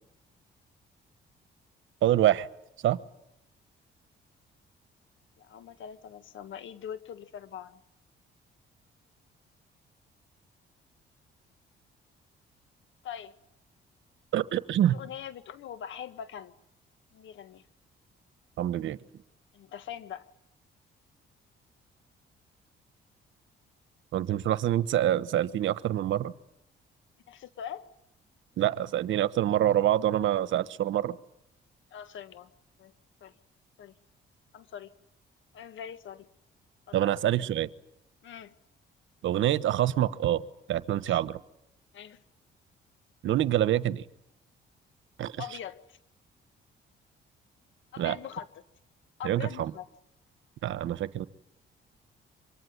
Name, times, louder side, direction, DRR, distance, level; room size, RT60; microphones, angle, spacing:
voice 1, 2.0-2.5 2.8-3.0 14.3-15.0 18.6-19.0 24.1-26.3 28.6-31.2 36.9-37.7 39.2-40.4 40.7-41.4 43.2-44.0 45.2-45.3 48.0-48.2 49.2-49.7 50.6-51.3, right 12 dB, 75° right, 15 dB, 1.1 m, -26 dB
voice 2, 5.4-7.8 13.0-13.3 14.9-16.5 17.1-17.6 19.5-20.3 27.3-27.9 31.9-32.5 32.8-32.9 33.2-33.3 33.8-33.9 34.5-34.9 35.5-36.3 36.9-37.0 38.2-38.5 41.0-41.2 41.9-42.2 45.4-46.0 47.9-48.6 49.2-49.9, left 9 dB, 75° left, 11 dB, 1.7 m, -42 dB
25.5 x 22.5 x 9.5 m, 0.79 s
cardioid pair, 90°, 20 cm